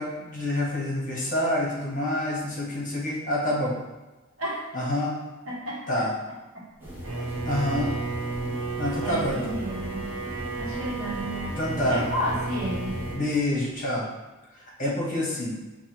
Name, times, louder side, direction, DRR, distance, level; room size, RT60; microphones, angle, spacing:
voice 1, 0.0-3.8 4.7-5.2 5.9-6.1 7.2-8.0 8.8-9.6 11.6-12.0 13.1-14.1 14.5-15.6, left 1 dB, 40° left, -4 dB, 1.0 m, -27 dB
voice 2, 5.5-6.0 6.5-6.6 9.0-10.1 10.6-11.6 11.8-13.0, equal, 70° right, -4 dB, 1.1 m, -32 dB
sound 1, 6.8-13.2, equal, 10° right, 0.8 m, -38 dB
Bowed string instrument, 7.0-13.3, right 3 dB, 90° right, 1.1 m, -33 dB
5.6 x 2.4 x 2.9 m, 1.1 s
head